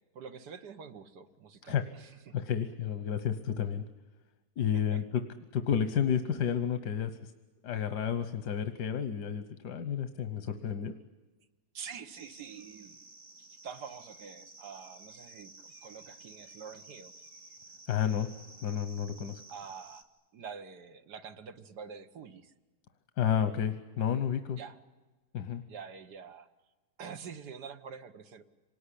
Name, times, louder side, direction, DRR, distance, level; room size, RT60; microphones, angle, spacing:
voice 1, 0.1-2.3 4.7-5.0 11.7-13.0 13.6-17.1 19.5-20.1 20.3-22.5 24.6-24.8 25.7-26.5 27.0-28.4, right 6 dB, 85° right, 8 dB, 1.8 m, -46 dB
voice 2, 2.3-3.8 4.6-5.2 5.5-7.3 7.6-10.9 17.9-18.3 18.6-19.4 23.2-24.6 25.3-25.6, left 8 dB, 85° left, 9 dB, 1.6 m, -31 dB
sound 1, 12.1-20.0, right 3 dB, 65° right, 2.6 m, -53 dB
27.0 x 19.0 x 10.0 m, 1.2 s
omnidirectional pair, 1.7 m